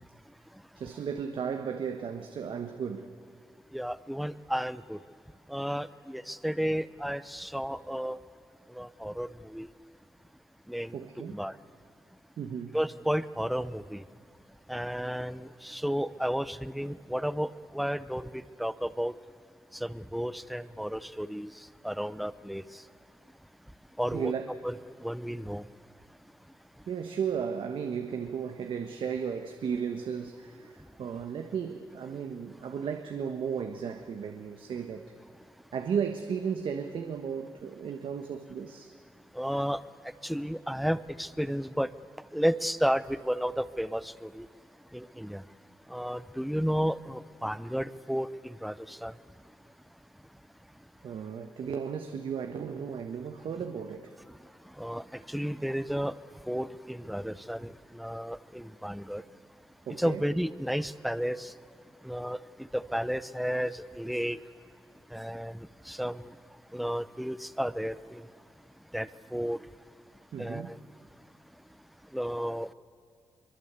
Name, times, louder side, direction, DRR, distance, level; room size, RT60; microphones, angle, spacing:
voice 1, 0.7-3.1 10.9-11.4 12.4-12.8 24.1-24.5 26.9-35.1 35.7-38.9 51.0-54.1 59.9-60.2 70.3-70.8, right 7 dB, 85° right, 6 dB, 1.4 m, -35 dB
voice 2, 3.7-5.0 5.5-8.2 8.8-9.7 10.7-10.9 11.3-11.5 12.7-14.0 14.7-19.1 19.8-21.5 21.8-22.6 24.0-24.3 24.6-24.7 25.0-25.6 39.4-39.8 40.2-41.9 42.3-44.5 44.9-45.4 45.9-49.1 54.8-55.0 55.3-56.1 56.5-59.2 60.0-61.5 62.0-62.4 62.7-64.4 65.1-65.6 65.9-66.2 66.7-68.0 68.9-69.6 70.4-70.8 72.1-72.7, equal, ahead, 15 dB, 0.6 m, -32 dB
24.5 x 23.5 x 8.3 m, 2.4 s
wide cardioid pair, 165°, 8 cm